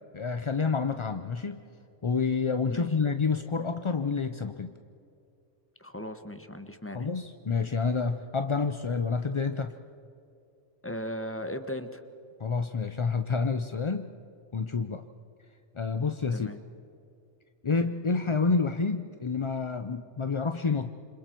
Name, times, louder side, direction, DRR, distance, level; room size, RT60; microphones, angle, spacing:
voice 1, 0.1-1.6 2.0-4.7 6.9-9.7 12.4-14.1 14.5-15.0 15.7-16.5 17.6-20.9, left 4 dB, 35° left, 8 dB, 0.5 m, -28 dB
voice 2, 5.8-7.1 10.8-12.0 16.3-16.6, equal, 10° left, 8 dB, 1.1 m, -37 dB
28.5 x 26.0 x 4.5 m, 2.6 s
omnidirectional pair, 1.3 m